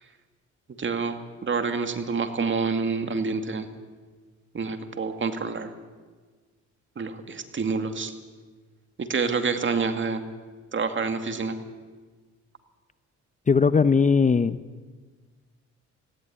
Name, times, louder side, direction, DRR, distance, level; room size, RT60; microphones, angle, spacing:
voice 1, 0.8-3.7 4.5-5.7 7.0-8.1 9.0-10.2 10.7-11.5, right 4 dB, 40° right, 7 dB, 2.3 m, -27 dB
voice 2, 13.5-14.6, left 5 dB, 25° left, 14 dB, 0.7 m, -19 dB
19.5 x 16.5 x 9.8 m, 1.4 s
cardioid pair, 90°, 30 cm